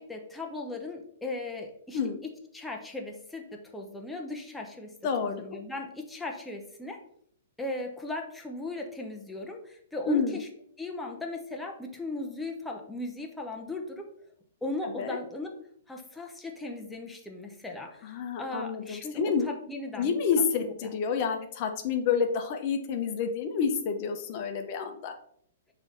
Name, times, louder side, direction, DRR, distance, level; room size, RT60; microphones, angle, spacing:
voice 1, 0.0-2.0 2.5-4.9 5.2-7.0 7.6-10.5 10.8-14.1 14.6-15.5 15.9-20.2 20.6-20.9, left 2 dB, 5° left, 1 dB, 0.6 m, -37 dB
voice 2, 5.0-5.4 10.1-10.4 15.0-15.2 18.0-19.5 20.0-25.1, left 6 dB, 45° left, 5 dB, 0.7 m, -29 dB
6.1 x 3.2 x 2.6 m, 0.64 s
figure-of-eight pair, 115°, 0 cm